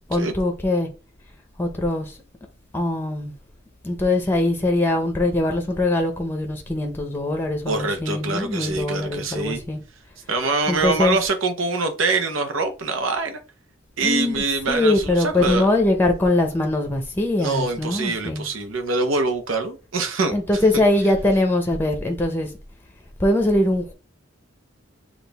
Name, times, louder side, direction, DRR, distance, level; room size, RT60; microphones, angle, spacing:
voice 1, 0.1-0.9 1.6-2.1 2.7-3.3 3.8-9.8 10.7-11.2 14.0-18.5 20.3-22.5 23.2-23.9, left 2 dB, 10° left, 0.7 m, -22 dB
voice 2, 7.7-9.6 10.3-13.4 14.0-15.7 17.4-20.8, right 3 dB, 90° right, 0.9 m, -24 dB
6.0 x 2.4 x 3.4 m
head